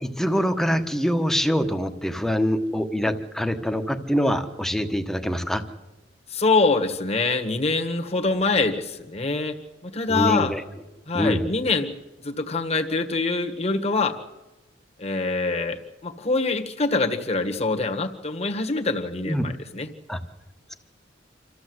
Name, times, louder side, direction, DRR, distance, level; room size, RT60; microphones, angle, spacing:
voice 1, 0.0-5.6 10.1-10.6 11.1-11.4 19.2-19.5 20.1-20.2, equal, ahead, 6 dB, 1.3 m, -24 dB
voice 2, 6.3-9.6 9.8-10.5 11.1-11.9 12.2-14.2 15.0-19.9, left 3 dB, 35° left, 4 dB, 1.7 m, -24 dB
26.5 x 14.5 x 8.0 m, 1.1 s
head